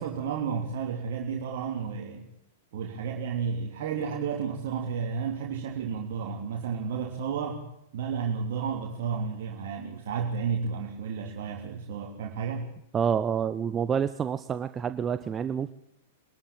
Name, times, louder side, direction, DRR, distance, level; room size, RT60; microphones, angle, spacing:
voice 1, 0.0-2.2 2.7-7.6 7.9-12.7, right 6 dB, 60° right, 0 dB, 3.3 m, -32 dB
voice 2, 12.9-15.7, right 7 dB, 25° right, 11 dB, 1.0 m, -28 dB
24.0 x 13.0 x 8.9 m, 0.79 s
hypercardioid pair, 105°, 0 cm